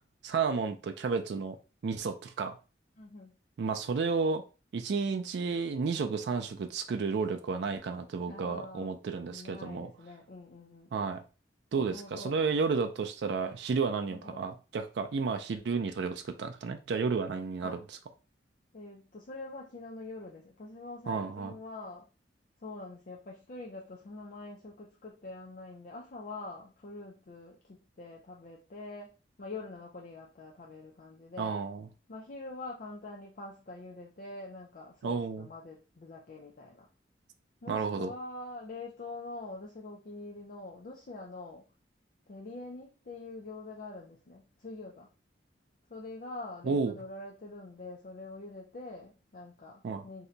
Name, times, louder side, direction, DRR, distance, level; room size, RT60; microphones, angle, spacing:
voice 1, 0.2-1.6 1.8-2.5 3.6-4.4 4.7-9.9 10.9-11.2 11.7-17.8 21.1-21.5 31.4-31.8 35.0-35.5 37.7-38.1 46.6-46.9 49.8-50.0, right 5 dB, 70° right, 7 dB, 0.4 m, -32 dB
voice 2, 3.0-3.3 8.2-8.9 9.3-11.0 11.8-12.5 14.1-14.4 17.6-17.8 18.7-22.1 22.6-29.1 29.4-31.6 32.1-36.9 37.6-41.6 42.3-45.1 45.9-50.3, left 2 dB, 50° left, -2 dB, 0.5 m, -45 dB
2.7 x 2.2 x 3.7 m, 0.33 s
head